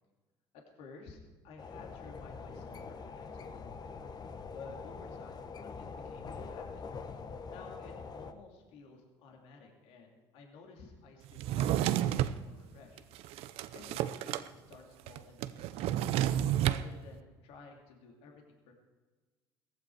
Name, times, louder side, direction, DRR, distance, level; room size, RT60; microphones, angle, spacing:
voice 1, 0.5-3.9 4.5-6.8 7.1-13.0 13.7-16.1 16.6-18.7, left 4 dB, 70° left, 1 dB, 2.7 m, -53 dB
sound 1, 1.6-8.3, left 5 dB, 40° left, 1.3 m, -44 dB
Drawer open or close, 11.4-12.4 13.0-14.5 14.7-14.8 15.1-16.8, right 12 dB, 70° right, 0.7 m, -30 dB
17.5 x 15.0 x 4.7 m, 1.3 s
hypercardioid pair, 70°, 10 cm